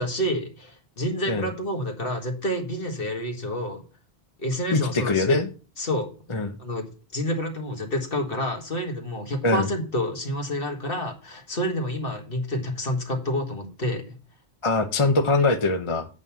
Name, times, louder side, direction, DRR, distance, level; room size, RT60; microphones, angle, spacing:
voice 1, 0.0-3.8 4.4-5.4 5.8-6.1 6.6-6.9 7.1-14.1, equal, 60° left, 2.1 m, -28 dB
voice 2, 4.7-5.5 6.3-6.5 9.4-9.7 14.6-16.1, left 3 dB, 30° left, 0.8 m, -22 dB
8.4 x 5.4 x 7.3 m
omnidirectional pair, 1.1 m